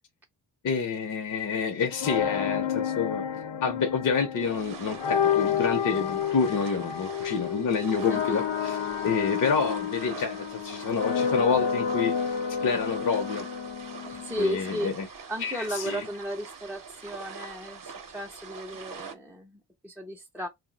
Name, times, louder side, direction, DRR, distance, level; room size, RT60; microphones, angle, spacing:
voice 1, 0.6-3.2 3.6-8.8 9.0-13.5 14.4-15.1 15.4-16.1, left 5 dB, 45° left, 0.6 m, -28 dB
sound 1, 1.9-14.8, left 7 dB, 85° left, 0.8 m, -30 dB
sound 2, 4.4-19.2, right 5 dB, 50° right, 0.7 m, -44 dB
voice 2, 8.1-8.5 14.1-14.9 15.3-20.5, equal, 5° right, 0.4 m, -35 dB
2.6 x 2.0 x 3.7 m
wide cardioid pair, 100°, 44 cm